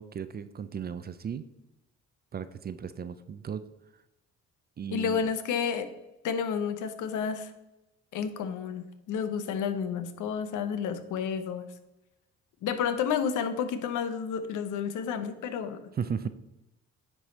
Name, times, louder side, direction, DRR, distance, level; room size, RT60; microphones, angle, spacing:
voice 1, 0.0-1.5 2.3-3.6 4.8-5.3 16.0-16.3, right 7 dB, 35° right, 13 dB, 0.4 m, -35 dB
voice 2, 4.9-5.9 6.2-7.5 8.1-11.6 12.6-15.8, left 7 dB, 80° left, 10 dB, 0.8 m, -31 dB
9.8 x 3.3 x 4.1 m, 0.93 s
cardioid pair, 90°, 30 cm